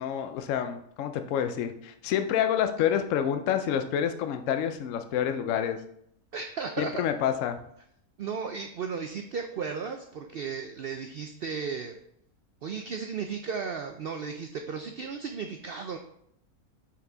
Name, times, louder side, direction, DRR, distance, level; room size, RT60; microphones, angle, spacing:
voice 1, 0.0-5.8 6.8-7.6, left 9 dB, 65° left, 8 dB, 0.9 m, -28 dB
voice 2, 6.3-7.0 8.2-12.0 12.6-16.0, right 6 dB, 80° right, 5 dB, 0.5 m, -35 dB
5.7 x 4.8 x 3.9 m, 0.70 s
omnidirectional pair, 1.6 m